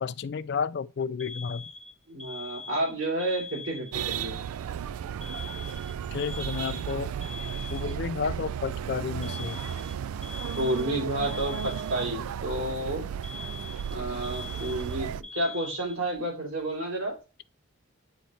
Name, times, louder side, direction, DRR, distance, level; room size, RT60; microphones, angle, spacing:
voice 1, 0.0-1.7 6.1-7.1 7.7-9.6, left 6 dB, 50° left, 0.3 m, -31 dB
Alarm, 1.2-4.2 5.2-8.2 9.2-12.2 13.2-16.2, left 4 dB, 30° left, 1.2 m, -43 dB
voice 2, 2.1-4.4 10.6-13.1 13.9-17.2, right 1 dB, 70° right, 3.0 m, -30 dB
sound 1, 3.9-15.2, right 8 dB, 85° right, 0.3 m, -34 dB
9.0 x 4.2 x 3.1 m
head